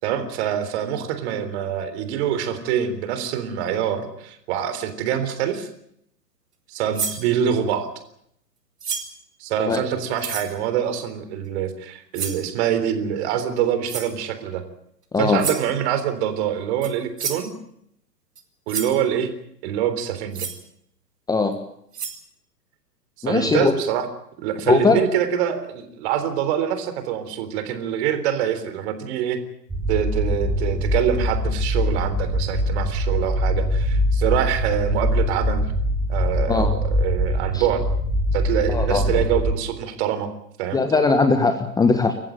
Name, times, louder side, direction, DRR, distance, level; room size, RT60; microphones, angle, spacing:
voice 1, 0.0-5.7 6.7-7.9 9.4-14.6 15.2-17.5 18.7-19.3 19.6-20.5 23.2-24.1 24.4-29.4 29.9-35.7 36.1-37.8 38.3-40.3 40.6-40.8, right 9 dB, 40° right, 10 dB, 3.8 m, -25 dB
sound 1, 6.9-7.2 8.8-9.2 10.2-10.5 12.1-12.5 13.8-14.1 15.4-15.7 16.8-16.9 17.2-17.5 18.3-18.4 18.7-19.0 20.3-20.6 21.5-21.6 21.9-22.2, right 6 dB, 70° right, 4.7 m, -29 dB
voice 2, 23.2-23.7 24.7-25.0 36.5-36.7 37.5-37.6 38.7-39.1 40.7-42.1, left 4 dB, 10° left, 7 dB, 1.4 m, -19 dB
sound 2, 29.7-39.5, equal, 10° right, 4.6 m, -23 dB
27.5 x 15.0 x 9.1 m, 0.73 s
figure-of-eight pair, 120°, 49 cm